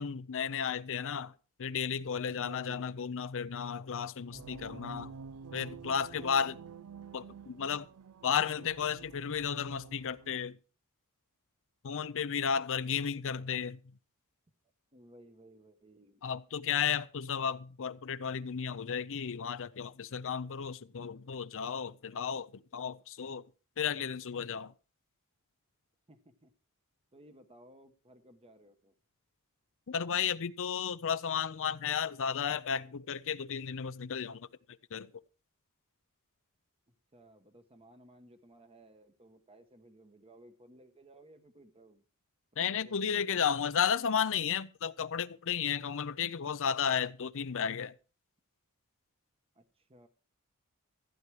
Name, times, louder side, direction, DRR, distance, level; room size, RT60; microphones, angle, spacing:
voice 1, 0.0-1.3 1.6-5.1 5.5-6.6 7.1-7.9 8.2-10.6 11.8-13.8 16.2-22.5 22.7-23.4 23.8-24.7 29.9-34.5 34.9-35.1 42.6-47.9, left 7 dB, 60° left, 0.6 m, -33 dB
voice 2, 2.3-3.0 6.1-6.6 12.0-12.3 14.9-16.2 26.1-26.5 27.1-28.9 37.1-42.0 42.5-43.3 49.5-50.1, right 1 dB, 25° right, 1.2 m, -58 dB
sound 1, 4.3-10.5, right 6 dB, 90° right, 0.5 m, -49 dB
15.0 x 9.8 x 4.8 m
head